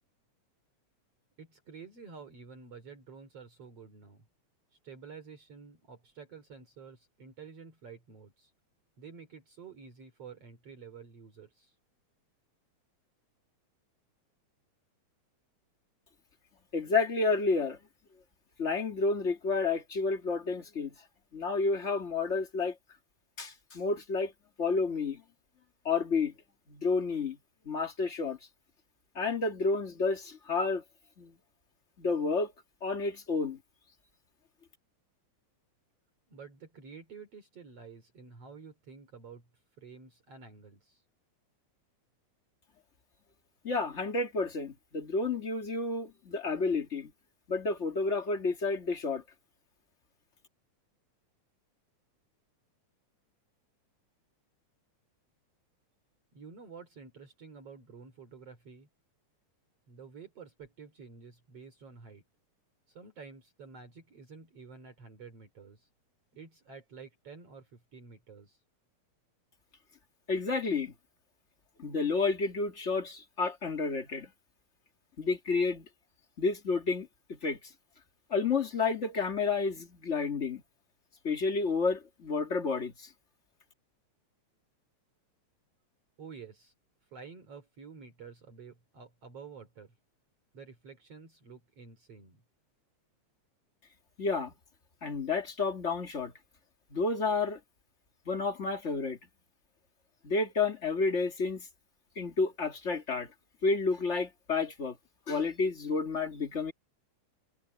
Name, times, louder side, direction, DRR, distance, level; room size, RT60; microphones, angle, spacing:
voice 1, 1.4-4.3 4.7-8.5 9.0-11.7 36.3-39.5 39.8-41.0 56.3-58.9 59.9-62.2 62.9-65.9 66.3-68.6 86.2-86.7 87.1-89.9 90.5-92.4, right 5 dB, 55° right, 4.3 m, -50 dB
voice 2, 16.7-17.8 18.6-20.9 21.3-22.8 23.4-24.3 24.6-25.2 25.8-26.3 26.7-27.4 27.7-28.4 29.2-30.8 31.2-31.3 32.0-32.5 32.8-33.6 43.6-47.1 47.5-49.2 70.3-70.9 71.8-74.3 75.2-75.9 76.4-77.6 78.3-80.6 81.2-83.1 94.2-94.5 95.0-96.3 96.9-97.6 98.3-99.2 100.2-101.7 102.2-103.3 103.6-105.0 105.3-106.7, left 4 dB, 25° left, 2.0 m, -30 dB
omnidirectional pair, 3.4 m